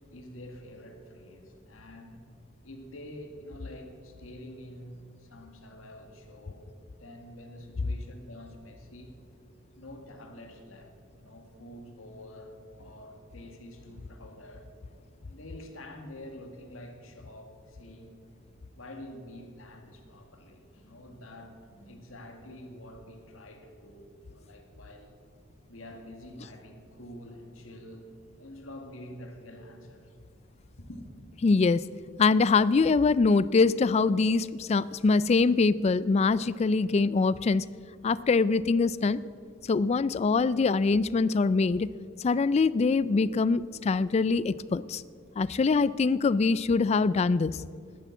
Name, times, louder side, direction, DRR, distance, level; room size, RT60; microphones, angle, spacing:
voice 1, 0.1-2.2 2.6-5.1 5.3-6.6 7.0-9.1 9.8-10.9 11.2-14.7 15.2-18.2 18.8-25.1 25.7-28.1 28.4-30.1 30.9-31.1, left 1 dB, 80° left, 4 dB, 1.9 m, -47 dB
voice 2, 31.4-31.8 32.2-37.7 38.0-39.2 39.7-41.9 42.2-45.0 45.4-47.6, left 4 dB, 30° left, 18 dB, 0.3 m, -24 dB
10.5 x 10.5 x 8.2 m, 2.1 s
head